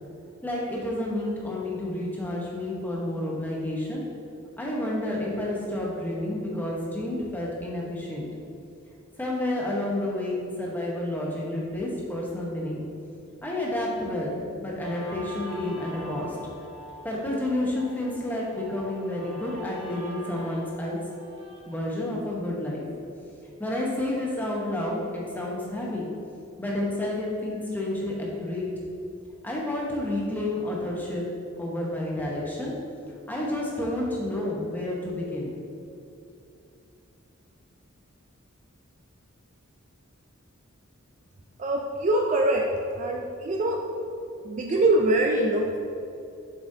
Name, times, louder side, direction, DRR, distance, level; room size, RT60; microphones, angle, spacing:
voice 1, 0.4-4.0 4.6-8.3 9.2-12.9 13.4-16.4 17.0-21.0 21.7-22.9 23.6-26.0 26.6-28.7 29.4-31.2 31.6-32.7 33.3-35.5, left 1 dB, 10° left, -4 dB, 0.9 m, -30 dB
Guitar, 14.8-21.8, equal, 75° right, 1.4 m, -43 dB
voice 2, 41.6-42.7 43.0-43.8 44.4-45.8, right 1 dB, 35° right, 1 dB, 0.4 m, -23 dB
7.2 x 5.1 x 2.7 m, 2.7 s
head